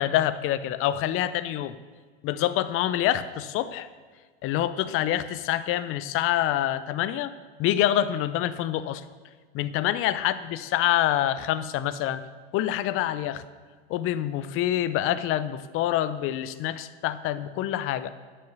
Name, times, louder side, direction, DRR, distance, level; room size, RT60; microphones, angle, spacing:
voice 1, 0.0-1.7 2.2-3.9 4.4-7.3 7.6-9.0 9.5-12.2 12.5-13.4 13.9-18.1, left 12 dB, 40° left, 15 dB, 0.7 m, -26 dB
12.0 x 6.7 x 6.7 m, 1.5 s
hypercardioid pair, 95°, 32 cm